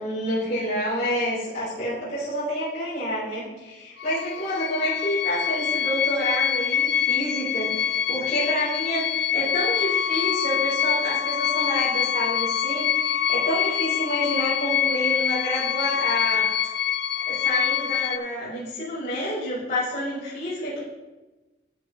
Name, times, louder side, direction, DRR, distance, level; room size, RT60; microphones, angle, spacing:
voice 1, 0.0-16.4 17.3-20.8, equal, 40° left, -10 dB, 3.5 m, -28 dB
sound 1, 4.0-18.2, left 9 dB, 60° left, 0.5 m, -25 dB
12.5 x 7.8 x 3.2 m, 1.1 s
head